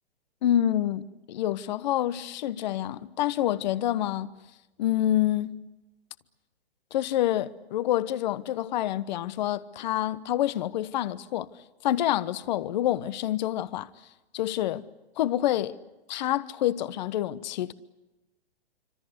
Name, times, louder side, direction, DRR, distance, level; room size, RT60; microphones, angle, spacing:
voice 1, 0.4-4.3 4.8-5.6 6.9-11.5 11.8-13.9 14.3-14.9 15.2-15.8 16.1-17.7, left 12 dB, 45° left, 1.1 m, -27 dB
26.5 x 25.5 x 8.1 m
hypercardioid pair, 140°, 31 cm